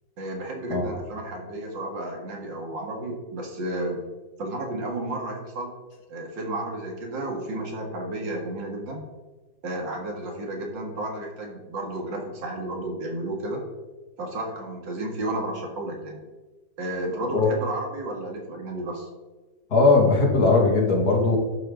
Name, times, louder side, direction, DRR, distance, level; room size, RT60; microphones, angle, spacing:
voice 1, 0.2-4.0 4.4-5.7 6.1-9.0 9.6-13.6 14.2-16.2 16.8-19.1, right 1 dB, 85° right, 1 dB, 2.6 m, -32 dB
voice 2, 19.7-21.4, left 3 dB, 60° left, -1 dB, 2.4 m, -19 dB
11.5 x 7.5 x 3.9 m, 1.2 s
omnidirectional pair, 1.9 m